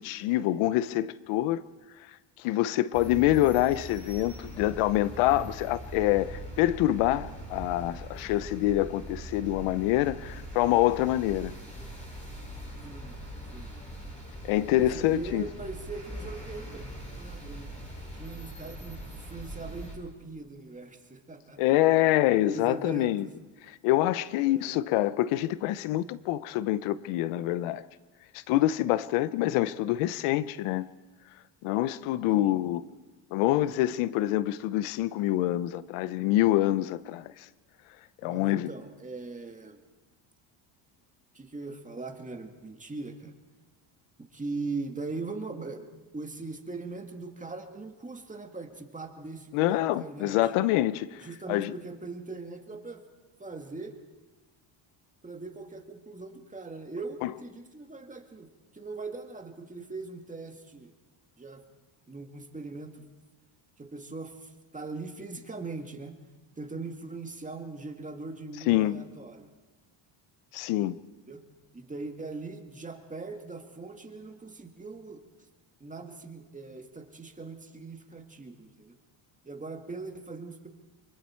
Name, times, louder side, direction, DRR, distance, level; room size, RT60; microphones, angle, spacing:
voice 1, 0.0-1.6 2.4-11.5 14.4-15.4 21.6-23.3 23.8-27.8 28.3-30.9 31.6-32.8 33.3-37.5 38.2-38.7 49.5-51.2 51.5-51.8 57.2-57.3 68.7-69.0 70.5-70.9, left 15 dB, 85° left, 0.8 m, -26 dB
sound 1, 2.9-20.0, right 1 dB, 15° left, 6.2 m, -42 dB
voice 2, 12.8-13.2 13.5-13.8 14.7-16.8 17.2-17.8 18.1-21.6 22.5-23.3 24.4-24.8 32.3-32.5 38.2-39.8 41.3-43.3 44.2-45.9 46.1-50.4 51.2-53.0 53.4-54.0 55.2-60.9 61.4-61.7 62.1-63.0 63.8-66.2 66.6-69.5 71.3-71.4 71.7-75.2 75.8-79.0 79.4-80.7, right 3 dB, 15° right, 2.0 m, -40 dB
25.0 x 23.0 x 4.5 m
cardioid pair, 105°, 49 cm